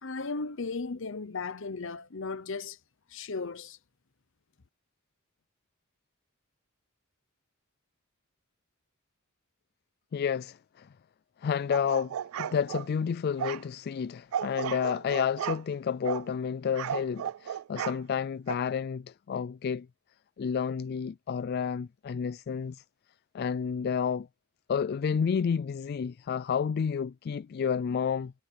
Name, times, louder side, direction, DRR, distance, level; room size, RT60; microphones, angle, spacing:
voice 1, 0.0-2.8 3.1-3.8, left 4 dB, 65° left, 0.9 m, -36 dB
voice 2, 10.1-10.9 11.4-19.9 20.4-22.8 23.3-24.3 24.7-28.3, left 7 dB, 50° left, 0.3 m, -30 dB
sound 1, 11.7-12.9 13.4-13.6 14.3-15.6 16.0-16.3 16.8-18.0 18.5-18.6, right 9 dB, 80° right, 0.3 m, -34 dB
head